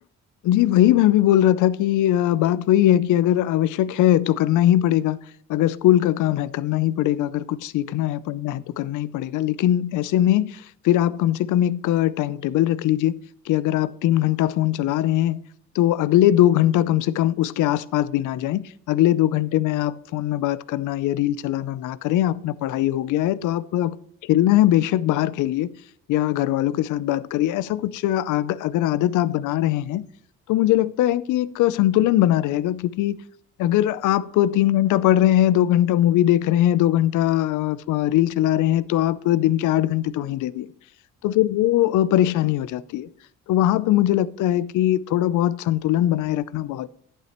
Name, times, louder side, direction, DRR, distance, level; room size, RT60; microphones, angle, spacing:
voice 1, 0.4-5.2 5.5-13.2 13.5-15.4 15.7-24.0 24.2-25.7 26.1-30.0 30.5-33.2 33.6-40.7 41.2-43.1 43.5-46.9, left 13 dB, 85° left, 0.6 m, -21 dB
10.5 x 9.2 x 3.0 m
cardioid pair, 90°, 30 cm